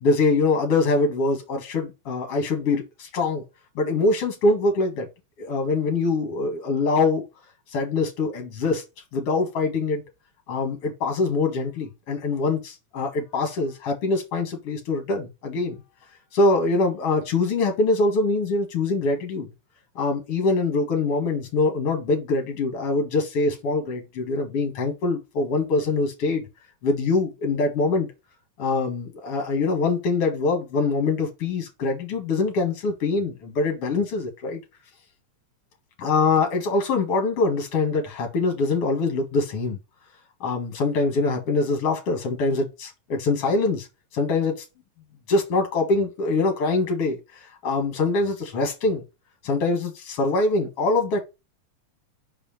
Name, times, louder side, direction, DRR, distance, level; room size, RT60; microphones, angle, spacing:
voice 1, 0.0-3.4 3.8-5.1 5.4-7.2 7.7-8.8 9.1-10.0 10.5-15.8 16.3-19.5 20.0-26.5 26.8-28.1 28.6-34.6 36.0-39.8 40.4-43.9 44.1-44.6 45.3-49.0 49.4-51.2, left 3 dB, 55° left, 2.8 m, -24 dB
5.6 x 4.9 x 4.4 m
omnidirectional pair, 3.4 m